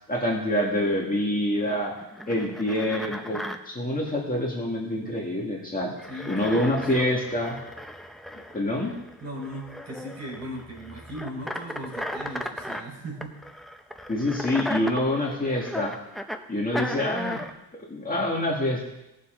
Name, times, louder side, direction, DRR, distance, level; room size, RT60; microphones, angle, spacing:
voice 1, 0.1-1.9 2.3-5.9 6.2-7.6 8.5-8.9 14.1-16.0 16.5-17.4 17.9-18.8, left 1 dB, 20° left, -2 dB, 2.0 m, -26 dB
sound 1, 1.6-3.6 5.8-12.8 13.2-16.4 16.7-17.5, equal, ahead, 0.7 m, -36 dB
voice 2, 6.1-6.9 9.2-13.4, right 1 dB, 40° right, -2 dB, 4.9 m, -38 dB
19.0 x 7.1 x 3.9 m, 0.91 s
cardioid pair, 130°, 41 cm